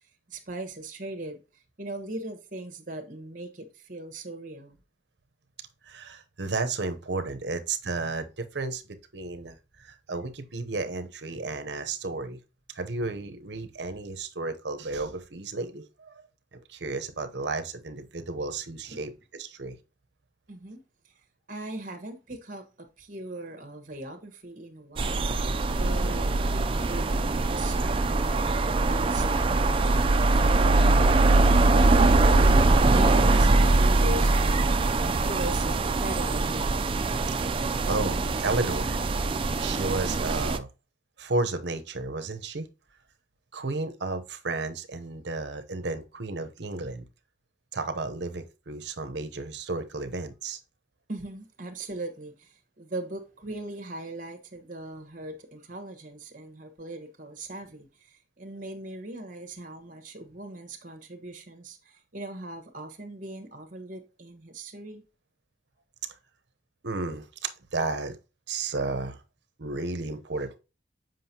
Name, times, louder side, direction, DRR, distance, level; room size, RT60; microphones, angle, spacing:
voice 1, 0.3-4.8 18.9-19.0 20.5-21.1 21.5-25.3 25.7-31.4 31.8-36.9 51.1-65.0, right 1 dB, 45° right, 1.3 m, -40 dB
voice 2, 5.9-12.4 12.7-16.2 16.5-19.8 37.5-39.0 39.3-40.7 41.2-42.7 43.5-47.0 47.7-50.6 66.8-68.2 68.5-69.2 69.6-70.6, right 3 dB, 70° right, 0.8 m, -33 dB
sound 1, 25.0-40.6, right 2 dB, 30° right, 0.4 m, -22 dB
7.6 x 5.3 x 2.8 m
head